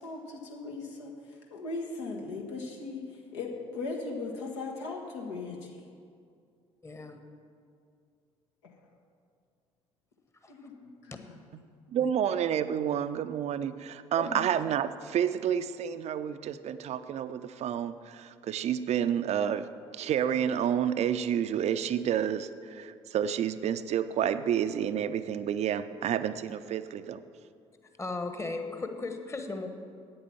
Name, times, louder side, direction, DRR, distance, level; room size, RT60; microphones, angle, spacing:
voice 1, 0.0-3.0 3.3-5.8 10.5-11.3, left 3 dB, 75° left, 0 dB, 1.5 m, -38 dB
voice 2, 6.8-7.2 10.4-10.5 11.1-11.2 11.9-12.1 14.2-14.4 28.0-29.7, left 3 dB, 20° left, 6 dB, 1.3 m, -36 dB
voice 3, 11.9-19.7 19.9-27.2, right 9 dB, 45° right, 12 dB, 0.5 m, -29 dB
8.7 x 8.6 x 7.1 m, 2.3 s
figure-of-eight pair, 50°, 15 cm